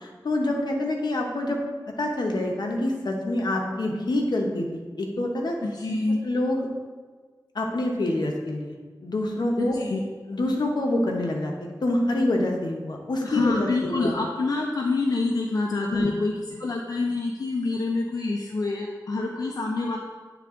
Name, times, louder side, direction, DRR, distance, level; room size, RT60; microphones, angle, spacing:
voice 1, 0.2-1.6 2.0-5.5 6.2-6.6 7.5-8.7 9.0-9.8 10.3-11.5 11.8-14.1 15.9-16.1, left 1 dB, 75° left, 1 dB, 0.9 m, -26 dB
voice 2, 5.6-6.2 9.6-10.0 13.2-16.3 16.6-20.0, left 3 dB, 55° left, -1 dB, 0.6 m, -26 dB
9.0 x 3.4 x 3.7 m, 1.5 s
wide cardioid pair, 80°, 7 cm